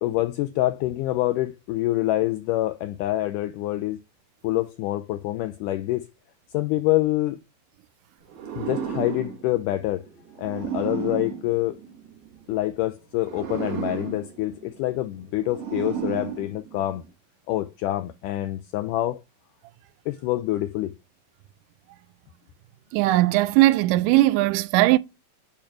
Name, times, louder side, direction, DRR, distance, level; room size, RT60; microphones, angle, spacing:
voice 1, 0.0-4.0 4.4-6.1 6.5-7.4 8.6-10.1 10.4-11.8 12.5-17.0 17.5-19.2 20.1-20.9, left 16 dB, 90° left, 1.8 m, -26 dB
sound 1, 8.3-12.4 13.1-17.1, right 8 dB, 55° right, 1.9 m, -34 dB
voice 2, 22.9-25.0, right 17 dB, 85° right, 1.8 m, -19 dB
8.4 x 3.3 x 5.6 m
omnidirectional pair, 4.2 m